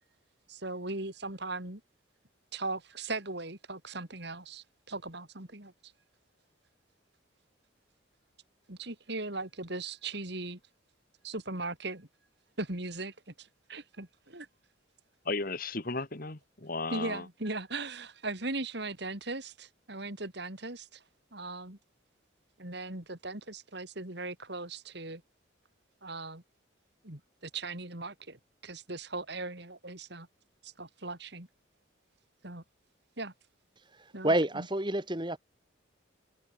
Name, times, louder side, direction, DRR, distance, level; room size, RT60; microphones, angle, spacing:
voice 1, 0.5-1.8 2.5-5.7 8.7-10.6 11.2-12.1 12.6-14.5 16.9-21.0 21.3-21.8 22.6-25.2 26.0-26.4 27.0-30.3 30.6-31.5 32.4-32.6 33.2-33.3 34.1-34.7, right 2 dB, 55° right, 3.3 m, -39 dB
voice 2, 15.3-17.3, left 3 dB, 45° left, 1.8 m, -35 dB
voice 3, 34.2-35.4, right 1 dB, 25° right, 2.2 m, -28 dB
head